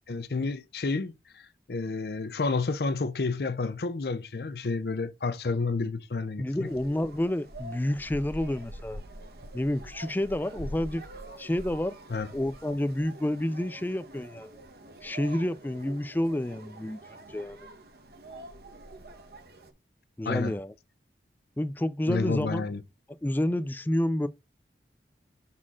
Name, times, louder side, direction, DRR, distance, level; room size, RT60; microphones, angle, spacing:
voice 1, 0.1-1.4 1.7-6.7 12.1-12.3 20.3-20.5 22.1-22.8, left 3 dB, 60° left, 0.6 m, -30 dB
voice 2, 6.4-9.0 9.5-11.1 11.4-12.0 12.3-14.6 15.0-17.0 17.3-17.7 20.2-20.7 21.6-22.7 23.2-24.3, left 1 dB, 10° left, 0.3 m, -29 dB
sound 1, 6.6-19.7, right 1 dB, 60° right, 1.0 m, -45 dB
6.1 x 4.2 x 3.6 m
head